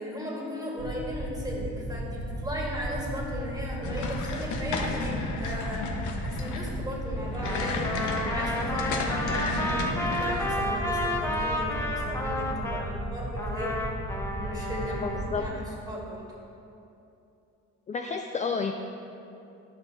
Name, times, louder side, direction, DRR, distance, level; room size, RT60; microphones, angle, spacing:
voice 1, 0.0-5.8 6.2-13.8 14.3-16.2, equal, 15° right, -4 dB, 1.7 m, -36 dB
sound 1, 0.8-15.4, right 1 dB, 80° right, 1.2 m, -35 dB
sound 2, 3.8-10.5, left 3 dB, 75° left, 0.8 m, -33 dB
Trumpet, 7.3-12.9 13.4-15.3, left 1 dB, 10° left, 0.8 m, -32 dB
voice 2, 14.9-15.4 17.9-18.7, left 5 dB, 25° left, 5 dB, 0.3 m, -31 dB
11.5 x 5.3 x 2.8 m, 2.8 s
cardioid pair, 90°, 30 cm